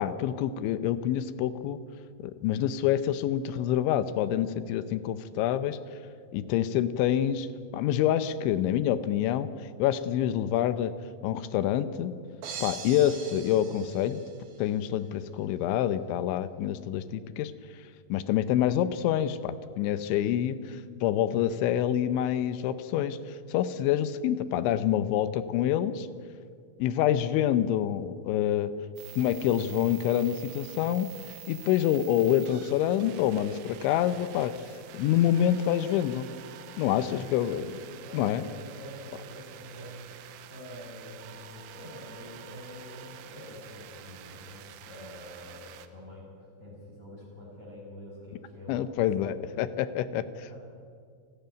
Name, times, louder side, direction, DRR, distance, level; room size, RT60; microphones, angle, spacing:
voice 1, 0.0-1.8 2.2-5.8 6.3-7.5 7.7-9.5 9.8-10.9 11.2-12.1 12.6-14.2 14.6-17.5 18.1-23.2 23.5-26.1 26.8-28.7 29.2-31.1 31.5-34.5 34.9-36.3 36.8-37.7 38.1-38.4 48.7-50.6, left 11 dB, 80° left, 13 dB, 3.1 m, -27 dB
sound 1, 12.4-14.7, right 6 dB, 60° right, 3.5 m, -42 dB
sound 2, 29.0-45.9, right 12 dB, 80° right, 3.3 m, -48 dB
voice 2, 36.7-37.1 37.6-40.2 40.5-49.6 50.4-50.6, left 1 dB, 15° left, -5 dB, 5.6 m, -46 dB
29.0 x 12.5 x 9.2 m, 2.2 s
omnidirectional pair, 5.4 m